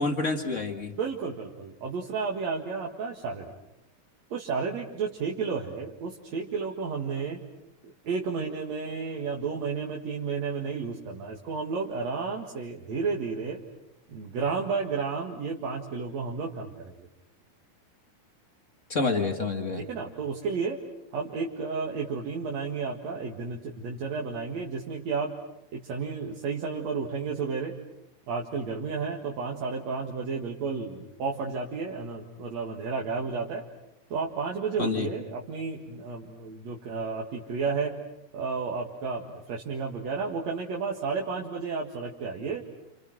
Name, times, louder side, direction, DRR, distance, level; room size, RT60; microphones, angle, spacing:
voice 1, 0.0-0.9 18.9-19.8 34.8-35.1, left 3 dB, 40° left, 5 dB, 1.0 m, -28 dB
voice 2, 1.0-3.5 4.3-7.4 7.8-13.6 14.1-17.1 19.8-20.8 21.1-25.4 25.7-27.8 28.3-33.6 34.1-38.0 38.3-42.6, right 5 dB, 50° right, -1 dB, 2.8 m, -32 dB
29.5 x 29.5 x 6.2 m, 0.86 s
omnidirectional pair, 4.4 m